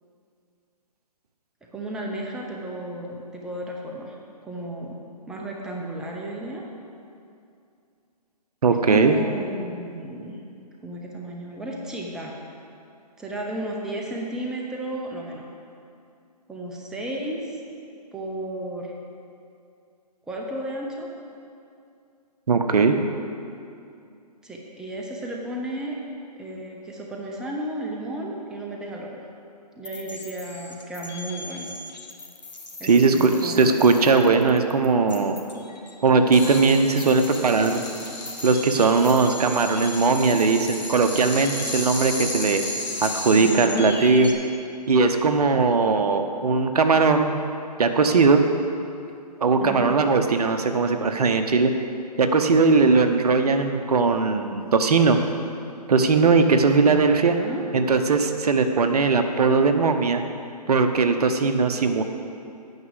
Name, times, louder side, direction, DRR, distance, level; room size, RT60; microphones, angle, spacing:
voice 1, 1.7-4.1 4.4-5.0 5.3-6.6 8.9-10.4 10.8-12.4 13.2-15.5 16.5-17.5 18.1-18.9 20.3-21.1 24.4-26.0 26.4-29.1 29.8-31.7 32.8-33.6 42.8-42.9 43.3-44.0 49.6-49.9 56.8-57.7, right 1 dB, 5° right, -1 dB, 0.6 m, -33 dB
voice 2, 8.6-9.2 22.5-22.9 32.8-35.4 36.0-37.8 38.4-42.6 43.0-44.3 44.9-47.3 47.8-48.4 49.4-51.7 52.2-55.2 55.9-57.3 57.7-60.2 60.7-62.0, right 4 dB, 65° right, 7 dB, 0.9 m, -19 dB
sound 1, 29.8-44.3, left 1 dB, 85° left, 1.5 m, -38 dB
sound 2, 36.3-43.3, left 3 dB, 45° left, 2.6 m, -35 dB
9.4 x 6.0 x 8.1 m, 2.5 s
figure-of-eight pair, 140°, 21 cm